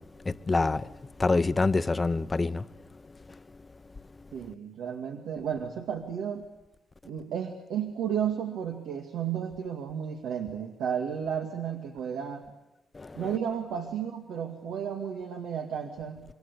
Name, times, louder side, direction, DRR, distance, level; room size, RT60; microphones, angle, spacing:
voice 1, 0.0-2.7 3.1-3.4 12.9-13.4, left 3 dB, 25° left, 0.9 m, -27 dB
voice 2, 4.3-6.5 7.0-12.4 13.2-16.2, right 8 dB, 90° right, 2.1 m, -33 dB
27.0 x 23.5 x 8.4 m
cardioid pair, 90°, 0 cm